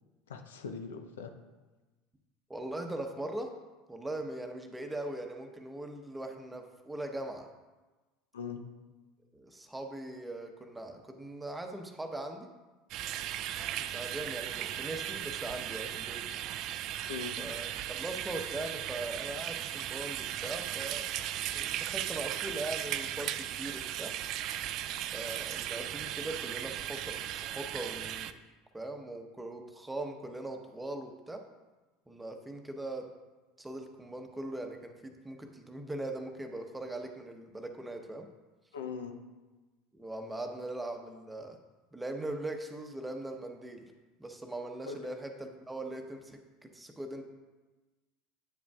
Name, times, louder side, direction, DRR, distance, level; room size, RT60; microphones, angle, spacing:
voice 1, 0.3-1.3 8.3-8.6 17.1-17.4 38.7-39.2 44.9-45.1, left 6 dB, 85° left, 6 dB, 0.6 m, -40 dB
voice 2, 2.5-3.5 3.9-7.5 9.3-12.5 13.8-16.2 17.4-21.1 21.5-24.1 25.1-28.4 28.7-31.4 32.1-33.1 33.6-38.3 39.9-41.6 41.9-43.9 44.2-47.2, right 1 dB, 10° right, 4 dB, 1.0 m, -40 dB
sound 1, 12.9-28.3, right 12 dB, 55° right, 0.3 m, -37 dB
9.1 x 7.2 x 2.4 m, 1.2 s
hypercardioid pair, 85°, 0 cm